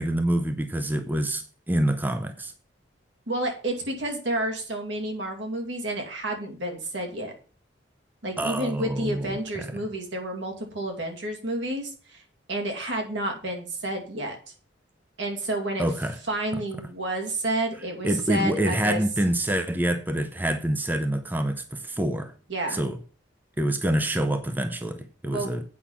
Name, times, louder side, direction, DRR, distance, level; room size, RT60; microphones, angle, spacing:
voice 1, 0.0-2.5 8.4-9.8 15.8-16.2 16.5-16.6 18.0-22.3 22.7-23.0 23.6-25.6, right 1 dB, 10° right, 0.6 m, -26 dB
voice 2, 3.3-7.3 8.2-12.2 12.5-14.4 15.2-15.8 16.3-19.0 22.5-22.8 25.3-25.5, right 1 dB, 75° right, 2.6 m, -30 dB
8.5 x 5.6 x 7.3 m
head